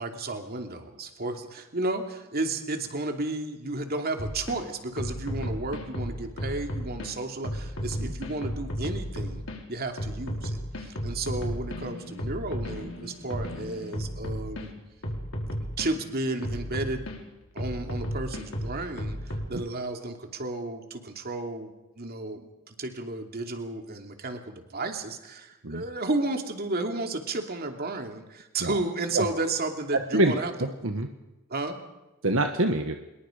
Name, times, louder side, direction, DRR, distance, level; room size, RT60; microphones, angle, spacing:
voice 1, 0.0-14.7 15.8-17.0 17.5-30.5 31.5-31.8, right 2 dB, 50° right, 4 dB, 2.7 m, -33 dB
sound 1, 4.2-4.6 5.0-7.1 7.4-9.6 10.0-14.6 15.0-15.9 16.4-17.2 17.6-19.5, equal, 70° left, 4.4 m, -33 dB
voice 2, 29.9-30.3 30.6-31.1 32.2-33.0, right 2 dB, 70° right, 5 dB, 1.6 m, -25 dB
25.5 x 22.0 x 5.2 m, 1.0 s
head